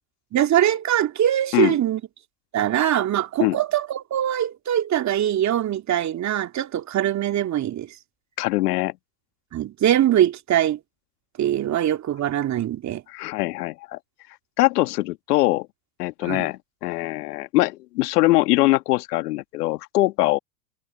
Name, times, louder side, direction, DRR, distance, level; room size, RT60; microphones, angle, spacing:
voice 1, 0.3-2.0 2.5-8.0 9.5-10.8 11.4-13.0 16.2-16.5, right 11 dB, 35° right, 2.8 m, -22 dB
voice 2, 8.4-8.9 13.1-14.0 14.6-15.7 16.0-20.4, left 19 dB, 70° left, 1.8 m, -22 dB
hypercardioid pair, 95°, 49 cm